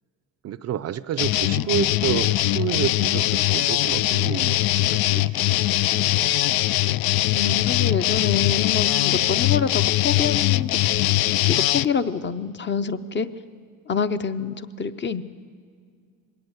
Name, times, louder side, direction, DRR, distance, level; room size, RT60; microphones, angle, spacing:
voice 1, 0.4-6.4 9.6-9.7, right 10 dB, 45° right, 16 dB, 0.5 m, -30 dB
sound 1, 1.2-11.9, left 16 dB, 80° left, 0.5 m, -21 dB
voice 2, 7.3-10.8 11.5-13.3 13.9-15.2, left 6 dB, 30° left, 11 dB, 0.7 m, -26 dB
21.0 x 17.5 x 8.1 m, 2.1 s
cardioid pair, 135°, 36 cm